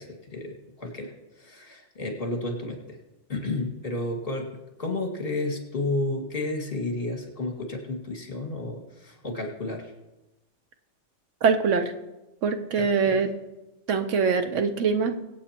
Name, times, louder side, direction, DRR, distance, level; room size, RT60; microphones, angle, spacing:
voice 1, 0.0-3.0 3.3-9.9 12.8-13.2, left 2 dB, 45° left, 1 dB, 2.2 m, -32 dB
voice 2, 11.4-11.9 12.4-13.3 13.9-15.1, right 5 dB, 75° right, 8 dB, 1.2 m, -23 dB
24.0 x 8.5 x 2.9 m, 1.0 s
omnidirectional pair, 1.3 m